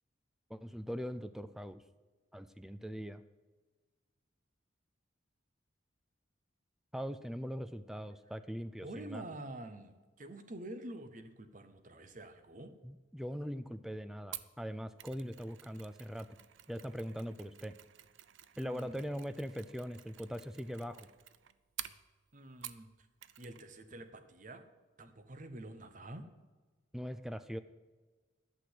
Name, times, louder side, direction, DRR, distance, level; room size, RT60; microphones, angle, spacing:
voice 1, 0.5-1.8 2.3-3.2 6.9-9.2 12.8-16.3 16.7-17.7 18.6-21.1 26.9-27.6, equal, ahead, 11 dB, 0.4 m, -41 dB
voice 2, 8.8-12.7 18.6-19.0 22.3-23.1 23.4-24.6 25.0-26.2, right 1 dB, 40° right, 9 dB, 0.9 m, -47 dB
Mechanisms, 14.3-22.9 23.2-23.7 23.9-24.1, right 13 dB, 70° right, 0.5 m, -51 dB
11.5 x 6.1 x 7.9 m, 1.3 s
head